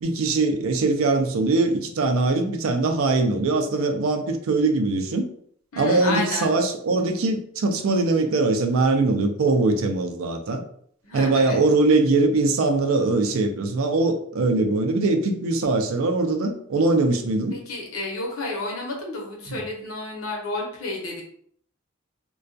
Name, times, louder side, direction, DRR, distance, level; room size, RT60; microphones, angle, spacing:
voice 1, 0.0-5.3 5.8-10.6 11.1-17.6, right 3 dB, 70° right, 0.4 m, -22 dB
voice 2, 5.7-6.5 11.0-11.6 17.5-21.2, left 2 dB, 80° left, 0.8 m, -31 dB
2.2 x 2.2 x 2.5 m
head